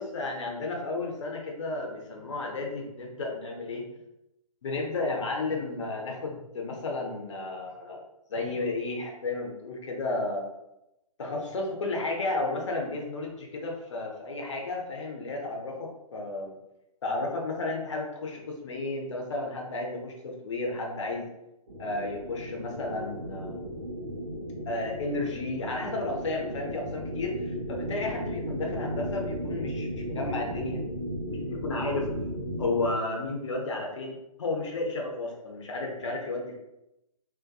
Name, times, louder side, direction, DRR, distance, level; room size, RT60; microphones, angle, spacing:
voice 1, 0.0-3.9 4.6-8.0 8.3-10.5 11.2-16.5 17.0-21.3 21.8-23.8 24.7-30.8 31.3-32.1 32.6-36.5, left 2 dB, 50° left, 0 dB, 0.6 m, -33 dB
sound 1, 21.7-32.9, equal, 75° right, 0.8 m, -35 dB
2.6 x 2.1 x 2.3 m, 0.90 s
figure-of-eight pair, 130°, 19 cm